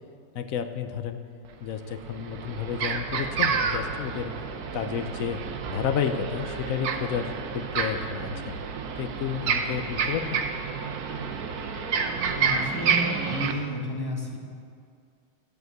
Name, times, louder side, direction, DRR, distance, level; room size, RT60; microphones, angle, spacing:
voice 1, 0.3-1.2 1.6-4.3 4.7-5.4 5.7-8.6 9.0-10.4, left 8 dB, 75° left, 8 dB, 0.7 m, -31 dB
sound 1, 1.4-1.5 1.9-13.5, right 5 dB, 60° right, 1.1 m, -29 dB
voice 2, 12.3-14.4, left 1 dB, 10° left, -2 dB, 1.7 m, -32 dB
13.0 x 8.0 x 7.8 m, 2.3 s
omnidirectional pair, 2.3 m